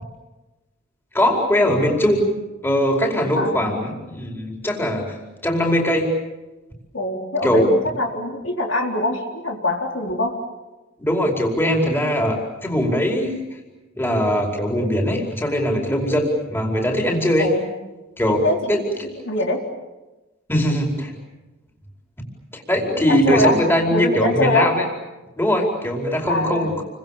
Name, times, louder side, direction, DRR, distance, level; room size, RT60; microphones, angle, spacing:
voice 1, 1.1-2.3 2.6-5.2 5.4-6.1 7.4-7.7 11.0-13.3 13.9-17.5 18.2-19.1 20.5-21.2 22.5-24.8 25.4-26.7, equal, 10° left, 0 dB, 4.8 m, -21 dB
voice 2, 3.3-3.7 6.9-7.7 7.9-10.3 17.4-17.7 18.4-18.6 19.2-19.6 23.1-23.6 23.9-24.8 26.3-26.7, left 1 dB, 65° left, 1 dB, 4.2 m, -23 dB
29.5 x 25.0 x 7.4 m, 1.1 s
head